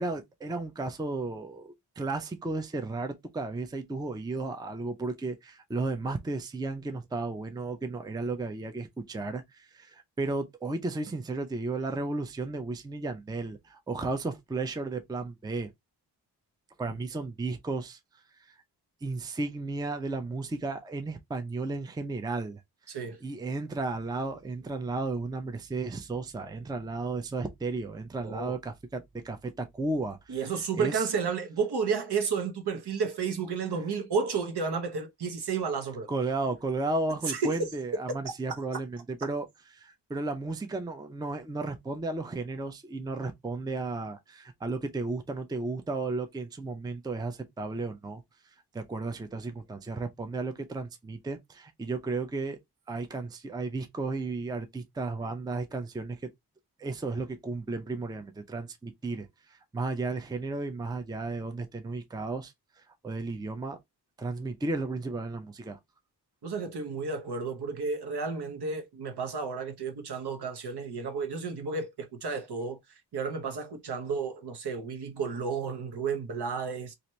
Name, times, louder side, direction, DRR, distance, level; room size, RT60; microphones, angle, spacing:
voice 1, 0.0-15.7 16.8-18.0 18.5-18.6 19.0-22.6 22.9-30.4 30.8-31.1 36.1-39.4 39.7-48.2 48.7-52.6 52.9-56.2 56.8-62.5 63.0-63.8 64.2-65.8, right 3 dB, 10° right, 0.4 m, -34 dB
voice 2, 22.9-23.2 28.2-28.6 30.3-36.1 37.3-37.7 66.4-72.8 73.1-77.0, right 5 dB, 75° right, 0.9 m, -32 dB
2.8 x 2.5 x 3.0 m
wide cardioid pair, 140°, 40 cm